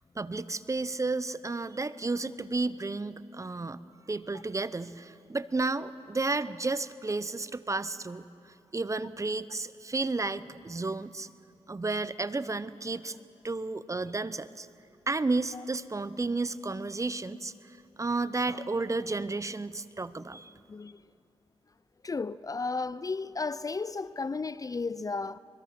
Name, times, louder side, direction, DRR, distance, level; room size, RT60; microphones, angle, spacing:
voice 1, 0.2-3.8 4.1-8.3 8.7-11.3 11.7-13.1 13.4-14.7 15.1-17.5 18.0-20.5, right 3 dB, 30° right, 0.8 m, -32 dB
voice 2, 20.7-21.0 22.0-25.4, left 4 dB, 35° left, 0.5 m, -34 dB
24.5 x 21.5 x 6.0 m
cardioid pair, 50°, 11 cm